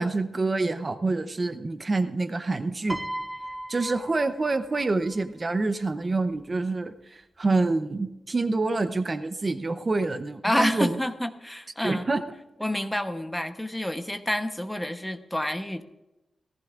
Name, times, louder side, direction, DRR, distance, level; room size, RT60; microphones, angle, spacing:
voice 1, 0.0-3.0 3.7-11.0 11.8-12.2, right 3 dB, 30° right, 10 dB, 0.7 m, -27 dB
Piano, 2.9-5.3 6.3-6.6, right 1 dB, 10° right, 0.3 m, -37 dB
voice 2, 10.4-12.1 12.6-15.8, left 1 dB, 10° left, 8 dB, 0.9 m, -29 dB
18.0 x 15.0 x 2.5 m, 0.96 s
wide cardioid pair, 115°, 0 cm